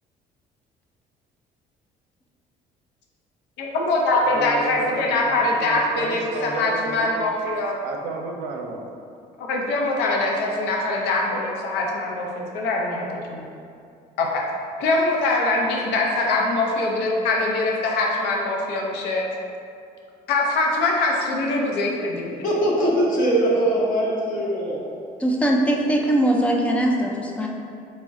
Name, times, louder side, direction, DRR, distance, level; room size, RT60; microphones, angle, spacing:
voice 1, 3.6-7.8 9.4-13.5 14.2-14.4 14.8-19.3 20.3-22.4, left 2 dB, 85° left, -1 dB, 0.6 m, -23 dB
voice 2, 4.1-7.3 7.8-8.8, right 3 dB, 90° right, 2 dB, 0.5 m, -31 dB
voice 3, 22.4-24.8, right 1 dB, 55° left, -4 dB, 0.8 m, -21 dB
voice 4, 25.2-27.5, right 1 dB, 5° left, -1 dB, 0.4 m, -21 dB
4.1 x 2.1 x 3.5 m, 2.4 s
cardioid pair, 110°, 17 cm